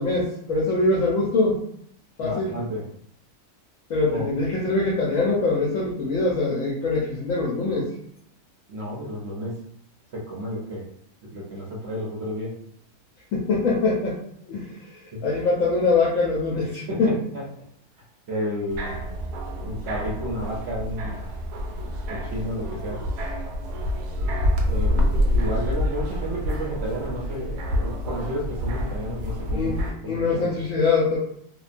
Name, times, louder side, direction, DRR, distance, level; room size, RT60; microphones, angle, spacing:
voice 1, 0.0-1.6 2.2-2.5 3.9-7.9 13.3-14.1 14.5-14.7 15.2-17.1 29.5-31.2, left 3 dB, 65° left, -5 dB, 1.0 m, -23 dB
voice 2, 2.2-2.8 4.1-4.3 8.7-9.6 10.1-10.9 11.3-12.5 16.9-17.5 18.3-19.0 19.6-21.2 22.1-23.0 24.7-30.5, equal, 55° right, -3 dB, 0.8 m, -31 dB
sound 1, 18.7-29.9, left 1 dB, 85° right, 1.1 m, -27 dB
2.8 x 2.2 x 2.5 m, 0.68 s
omnidirectional pair, 1.6 m